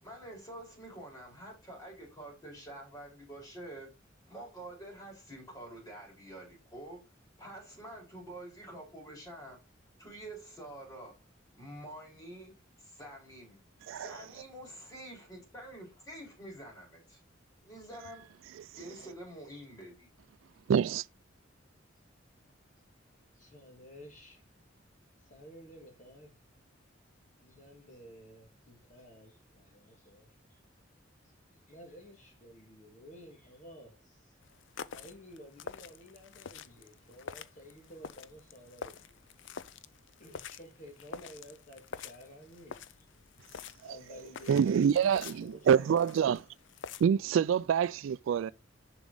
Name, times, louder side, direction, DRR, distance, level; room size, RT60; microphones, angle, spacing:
voice 1, 0.0-3.9 4.3-7.0 7.4-9.6 10.0-11.1 11.5-12.5 12.8-13.6 13.9-17.2 17.6-18.2 18.7-20.1, right 1 dB, 20° left, 4.6 m, -47 dB
voice 2, 20.7-21.0 44.5-46.4 47.0-48.5, right 7 dB, 80° right, 0.3 m, -26 dB
voice 3, 23.3-24.4 25.2-26.4 27.4-30.3 31.7-34.3 34.9-39.1 40.2-42.9 43.8-46.1 48.3-48.5, equal, 40° left, 2.0 m, -53 dB
sound 1, 34.4-47.0, left 6 dB, 65° left, 0.5 m, -47 dB
7.1 x 6.1 x 3.9 m
head